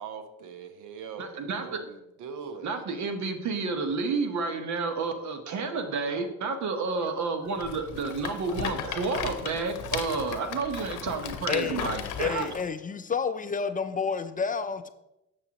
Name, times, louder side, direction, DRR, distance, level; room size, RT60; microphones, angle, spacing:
voice 1, 0.0-2.8, right 6 dB, 85° right, 0.8 m, -41 dB
voice 2, 1.2-1.8 2.6-12.5, right 4 dB, 70° right, 1.0 m, -30 dB
Rattle, 7.6-12.7, left 8 dB, 80° left, 0.7 m, -36 dB
voice 3, 11.5-11.9 12.2-14.9, left 5 dB, 30° left, 0.4 m, -30 dB
7.1 x 6.7 x 2.9 m
cardioid pair, 90°, 30 cm